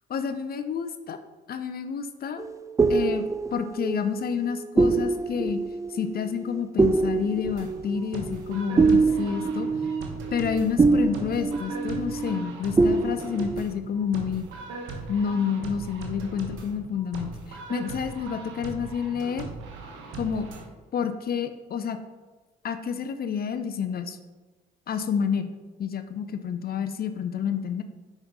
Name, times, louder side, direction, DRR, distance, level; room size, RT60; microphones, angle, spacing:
voice 1, 0.1-1.2 1.5-2.5 2.9-3.3 3.5-5.6 5.9-9.7 10.3-14.5 15.1-19.5 20.1-20.5 20.9-22.0 22.6-24.2 24.9-25.5 25.8-27.8, left 7 dB, 50° left, 9 dB, 0.6 m, -29 dB
sound 1, 2.4-12.5 12.8-13.6, right 3 dB, 15° right, 0.4 m, -25 dB
sound 2, 7.4-20.7, right 3 dB, 75° right, 1.1 m, -39 dB
6.1 x 4.9 x 4.1 m, 1.2 s
hypercardioid pair, 55°, 20 cm